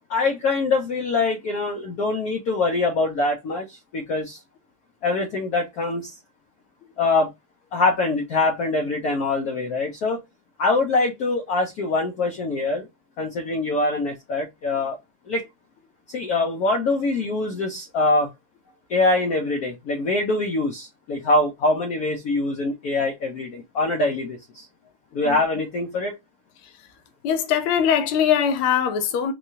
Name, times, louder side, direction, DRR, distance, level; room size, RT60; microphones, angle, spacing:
voice 1, 0.1-4.4 5.0-6.1 7.0-7.3 7.7-10.2 10.6-12.9 13.2-15.0 15.3-15.5 16.1-18.3 18.9-24.7 25.1-26.1, left 3 dB, 65° left, 1.0 m, -24 dB
voice 2, 27.2-29.3, left 8 dB, 80° left, 1.6 m, -22 dB
4.6 x 2.3 x 2.7 m
omnidirectional pair, 2.4 m